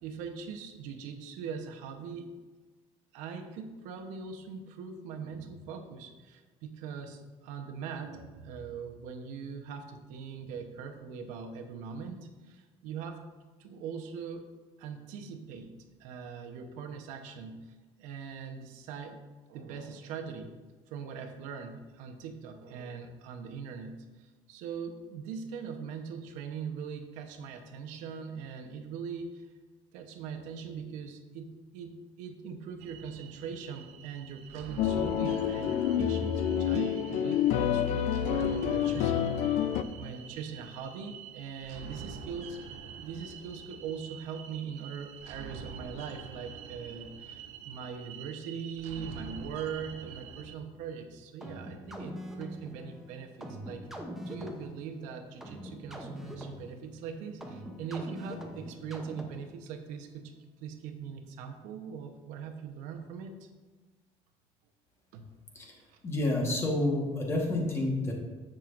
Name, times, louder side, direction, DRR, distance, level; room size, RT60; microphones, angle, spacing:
voice 1, 0.0-2.3 3.1-13.2 13.6-14.5 14.8-15.7 16.0-19.2 19.5-20.5 20.9-29.5 29.9-39.6 39.9-42.6 43.0-53.9 54.2-63.5 65.1-65.3 65.9-66.0, right 6 dB, 80° right, 5 dB, 1.0 m, -41 dB
sound 1, 32.8-50.6, right 6 dB, 65° right, 0.8 m, -46 dB
sound 2, 34.8-39.8, left 9 dB, 65° left, 0.5 m, -28 dB
sound 3, 51.4-59.6, equal, 5° right, 0.7 m, -43 dB
voice 2, 66.0-68.1, left 1 dB, 20° left, 0 dB, 1.3 m, -29 dB
10.5 x 7.7 x 2.6 m, 1.3 s
cardioid pair, 170°, 13 cm